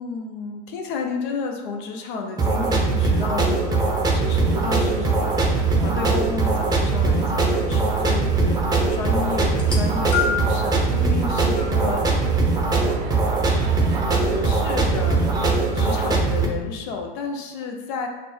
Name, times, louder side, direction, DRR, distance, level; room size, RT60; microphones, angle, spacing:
voice 1, 0.0-12.0 14.1-15.3 15.7-18.1, left 4 dB, 60° left, 3 dB, 0.6 m, -31 dB
sound 1, 2.4-16.5, right 3 dB, 15° right, 0.6 m, -21 dB
sound 2, 4.2-15.6, right 5 dB, 50° right, 0.6 m, -34 dB
sound 3, 9.5-10.7 11.5-11.7 12.8-12.9, left 6 dB, 15° left, 0.9 m, -26 dB
5.8 x 2.1 x 3.1 m, 1.2 s
hypercardioid pair, 100°, 29 cm